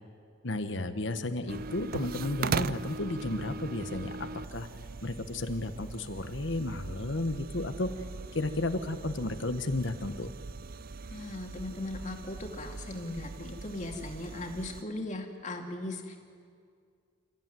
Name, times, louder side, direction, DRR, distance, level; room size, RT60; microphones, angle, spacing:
voice 1, 0.4-4.7 5.0-7.9 8.3-10.3, left 2 dB, 70° left, 9 dB, 1.3 m, -33 dB
sound 1, 1.5-14.8, right 4 dB, 50° right, 0.5 m, -40 dB
voice 2, 11.1-16.2, left 2 dB, 40° left, 2 dB, 2.4 m, -38 dB
28.5 x 14.5 x 9.2 m, 2.2 s
head